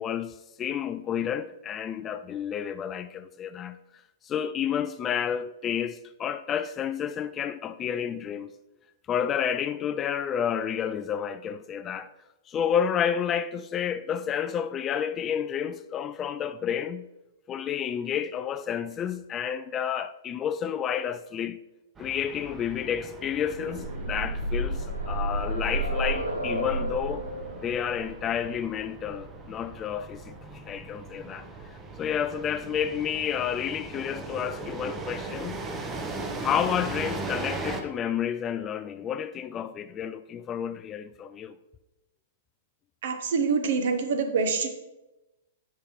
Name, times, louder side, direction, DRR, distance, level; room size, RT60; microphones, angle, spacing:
voice 1, 0.0-3.8 4.2-8.5 9.1-12.1 12.5-17.1 17.5-21.6 22.0-27.3 27.6-31.5 32.0-35.6 36.4-41.5, left 8 dB, 25° left, 0.3 m, -30 dB
sound 1, 22.0-37.8, right 3 dB, 15° right, 0.8 m, -39 dB
sound 2, 23.3-31.1 32.2-32.3 32.7-32.8, right 1 dB, 85° right, 0.9 m, -32 dB
voice 2, 43.0-44.7, right 5 dB, 55° right, 0.9 m, -25 dB
9.7 x 5.7 x 3.1 m
figure-of-eight pair, 105°, 0 cm